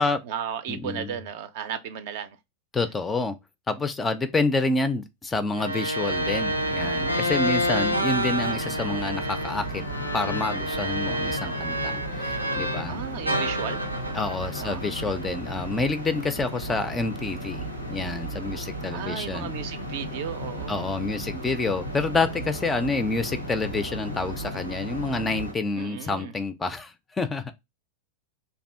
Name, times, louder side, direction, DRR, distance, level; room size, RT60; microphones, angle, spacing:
voice 1, 0.0-2.4 12.9-13.9 14.6-14.8 18.9-20.9 25.8-26.3, right 8 dB, 50° right, 0.5 m, -35 dB
voice 2, 0.7-1.1 2.7-3.4 3.7-9.8 10.1-13.0 14.1-19.5 20.7-27.5, left 3 dB, 15° left, 0.4 m, -28 dB
sound 1, 5.5-12.9 13.3-15.6, equal, 90° left, 0.4 m, -29 dB
sound 2, 6.1-25.5, right 1 dB, 90° right, 0.7 m, -35 dB
2.7 x 2.3 x 3.2 m
figure-of-eight pair, 90°, 0 cm